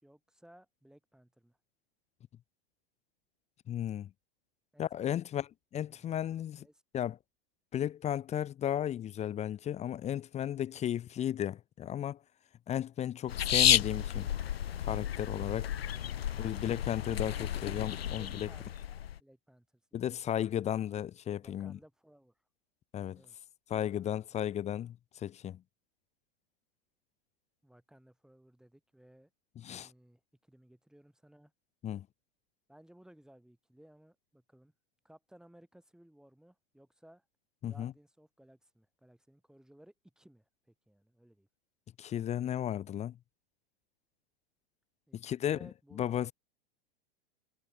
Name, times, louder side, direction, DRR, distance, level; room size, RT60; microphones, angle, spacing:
voice 1, 0.0-1.6 4.7-5.2 5.8-6.2 6.6-6.8 15.9-16.7 18.1-18.7 19.2-19.8 21.4-22.3 23.1-23.4 23.9-24.6 27.6-29.3 29.6-31.5 32.7-34.7 35.0-37.3 37.7-41.5 45.1-46.3, right 1 dB, ahead, 5.3 m, -60 dB
voice 2, 3.7-4.1 4.8-6.7 6.9-7.2 7.7-12.2 12.7-14.3 14.8-15.7 16.4-18.5 19.9-21.8 22.9-23.2 23.7-25.6 29.6-29.9 31.8-32.1 37.6-37.9 42.0-43.1 45.1-45.6 46.0-46.3, left 10 dB, 20° left, 0.8 m, -34 dB
sound 1, 13.3-19.2, left 10 dB, 85° left, 0.8 m, -31 dB
hypercardioid pair, 105°, 30 cm